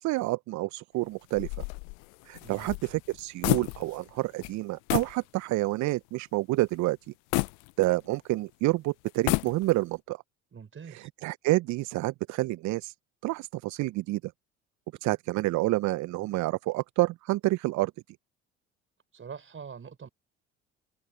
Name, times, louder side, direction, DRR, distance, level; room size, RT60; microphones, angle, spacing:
voice 1, 0.0-1.6 2.2-7.1 7.8-10.2 10.9-12.9 13.2-14.3 15.0-18.2, right 19 dB, 50° right, 0.9 m, -29 dB
sound 1, 1.3-4.1 4.4-4.6 4.9-5.2 5.7-5.8 7.3-8.3 9.1-9.9, left 38 dB, 60° left, 0.6 m, -31 dB
voice 2, 10.5-11.1 19.1-20.1, right 6 dB, 35° right, 5.8 m, -44 dB
figure-of-eight pair, 60°, 36 cm